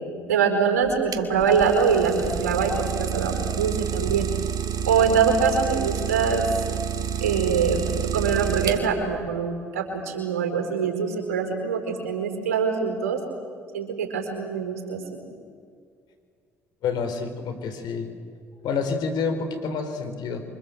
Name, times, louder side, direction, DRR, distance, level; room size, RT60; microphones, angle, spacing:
voice 1, 0.3-4.3 4.9-6.5 7.2-7.8 8.1-13.2 13.7-15.2, right 6 dB, 85° right, 4 dB, 4.7 m, -24 dB
Idling, 0.8-9.2, right 8 dB, 55° right, 2.6 m, -29 dB
voice 2, 16.8-18.1 18.6-20.4, left 5 dB, 65° left, 6 dB, 4.4 m, -28 dB
28.0 x 25.0 x 8.0 m, 2.1 s
hypercardioid pair, 50°, 8 cm